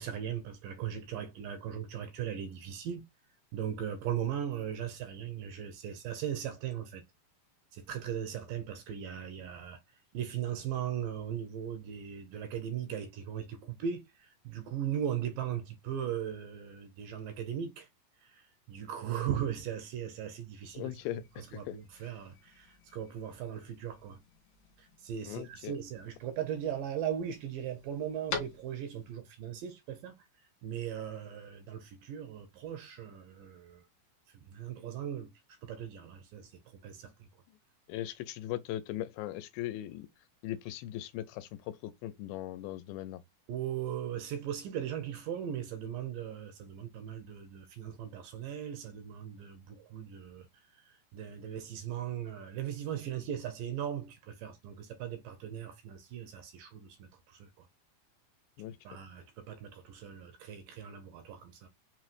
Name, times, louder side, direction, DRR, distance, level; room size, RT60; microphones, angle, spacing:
voice 1, 0.0-3.1 3.5-7.0 7.7-9.8 10.1-17.9 18.2-20.9 21.4-24.2 24.8-30.3 30.6-33.9 34.3-35.3 35.6-37.3 43.5-50.5 50.7-57.7 58.8-61.7, right 9 dB, 75° right, 2.2 m, -38 dB
sound 1, 20.6-29.1, left 5 dB, 60° left, 2.4 m, -47 dB
voice 2, 20.7-22.0 25.3-25.8 37.9-40.1 40.4-43.2 58.6-58.8, left 13 dB, 85° left, 2.4 m, -39 dB
5.9 x 3.1 x 2.5 m
omnidirectional pair, 4.3 m